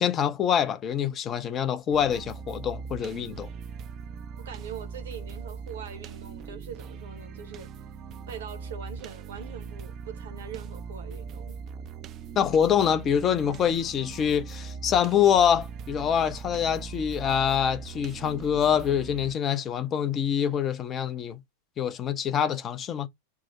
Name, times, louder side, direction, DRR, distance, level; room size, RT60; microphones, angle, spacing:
voice 1, 0.0-3.5 12.4-21.4 21.8-23.1, left 8 dB, 25° left, 0.5 m, -25 dB
sound 1, 1.9-19.3, right 6 dB, 35° right, 0.4 m, -40 dB
voice 2, 4.4-7.7 8.3-11.6, right 7 dB, 60° right, 0.8 m, -42 dB
4.6 x 2.0 x 4.1 m
figure-of-eight pair, 90°, 0 cm